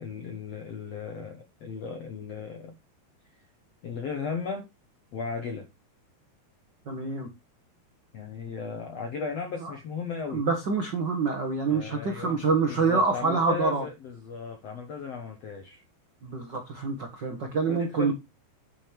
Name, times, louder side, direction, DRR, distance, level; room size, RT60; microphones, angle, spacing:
voice 1, 0.0-2.8 3.3-3.4 3.8-4.7 5.1-5.7 8.1-10.5 11.7-12.4 12.7-15.8 17.7-18.1, left 5 dB, 70° left, 1.5 m, -36 dB
voice 2, 6.8-7.3 9.6-9.7 10.3-13.8 16.2-18.1, right 4 dB, 65° right, 1.0 m, -26 dB
9.7 x 5.3 x 4.6 m
omnidirectional pair, 4.7 m